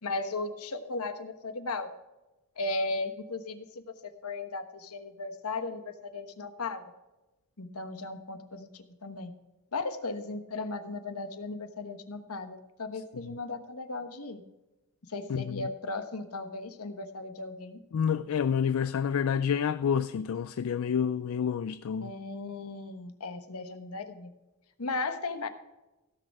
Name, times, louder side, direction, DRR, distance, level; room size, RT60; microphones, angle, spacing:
voice 1, 0.0-1.9 2.6-6.8 7.6-9.4 9.7-14.4 15.1-17.8 22.0-24.3 24.8-25.5, left 3 dB, 85° left, 1.2 m, -36 dB
voice 2, 15.3-15.7 17.9-22.1, left 7 dB, 70° left, 0.3 m, -28 dB
16.5 x 6.4 x 4.7 m
head